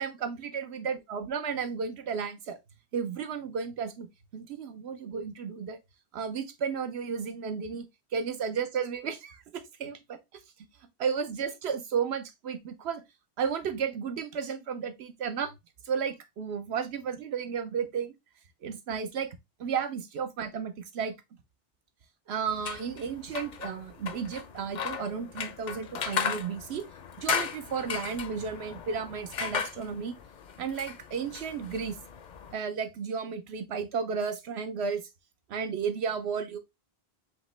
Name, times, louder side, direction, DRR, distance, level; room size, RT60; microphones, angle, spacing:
voice 1, 0.0-2.6 2.9-5.8 6.1-7.9 8.1-10.4 11.0-13.0 13.4-15.5 15.8-18.2 18.6-21.1 22.3-26.9 27.2-30.2 30.6-32.0 32.5-35.1 35.5-36.6, right 6 dB, 85° right, 1.0 m, -33 dB
sound 1, 22.5-32.5, left 7 dB, 55° left, 0.6 m, -36 dB
5.0 x 2.9 x 3.2 m
omnidirectional pair, 1.1 m